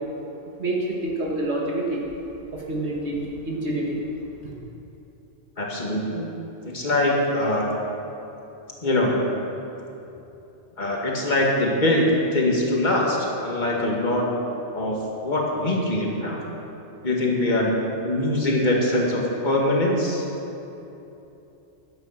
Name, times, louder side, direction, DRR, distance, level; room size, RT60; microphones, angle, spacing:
voice 1, 0.6-2.0 2.5-4.0 4.4-4.5, right 1 dB, 75° right, -3 dB, 1.9 m, -27 dB
voice 2, 5.6-6.3 6.7-7.7 8.8-9.2 10.8-14.2 14.7-15.0 15.2-16.4 17.0-20.2, left 1 dB, 40° left, -2 dB, 2.1 m, -23 dB
13.5 x 9.7 x 5.8 m, 3.0 s
omnidirectional pair, 1.2 m